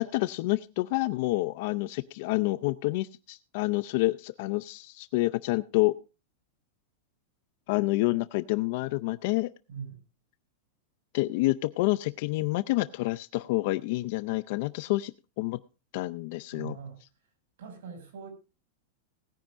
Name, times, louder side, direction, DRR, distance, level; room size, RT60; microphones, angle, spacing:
voice 1, 0.0-5.9 7.7-9.5 11.1-15.6 15.9-16.8, left 20 dB, 45° left, 14 dB, 0.5 m, -28 dB
voice 2, 9.7-10.0 16.5-17.0 17.6-18.3, right 6 dB, 75° right, 6 dB, 6.2 m, -41 dB
19.5 x 10.0 x 2.5 m, 0.31 s
supercardioid pair, 170°, 0 cm